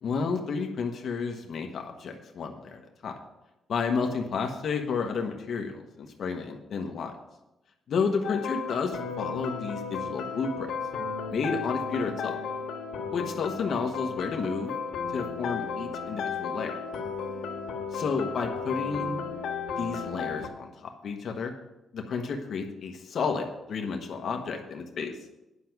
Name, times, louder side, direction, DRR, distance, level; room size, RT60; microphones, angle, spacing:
voice 1, 0.0-3.1 3.7-7.1 7.9-10.7 11.3-12.3 13.1-14.7 15.1-16.7 17.9-19.2 19.8-21.5 21.9-25.1, left 5 dB, 50° left, 3 dB, 1.1 m, -31 dB
sound 1, 8.2-20.5, left 5 dB, 75° left, 1.6 m, -34 dB
10.0 x 5.9 x 7.9 m, 0.95 s
cardioid pair, 165°, 0 cm